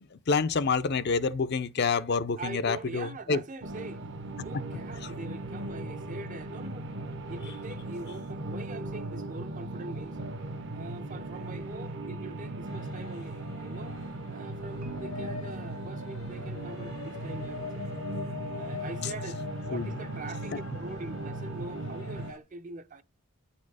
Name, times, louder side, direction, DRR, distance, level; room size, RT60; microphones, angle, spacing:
voice 1, 0.1-3.4 5.0-5.1 19.7-19.9, left 4 dB, 50° left, 0.5 m, -28 dB
voice 2, 2.4-4.0 4.4-6.9 7.3-10.2 10.7-14.0 14.3-17.8 18.3-23.0, right 3 dB, 35° right, 0.5 m, -43 dB
sound 1, 3.6-22.3, right 2 dB, 55° right, 0.9 m, -38 dB
sound 2, 12.7-22.4, left 5 dB, 70° left, 0.9 m, -44 dB
Marimba xylophone, 14.8-17.0, right 2 dB, 80° right, 1.7 m, -49 dB
9.3 x 4.3 x 4.8 m
head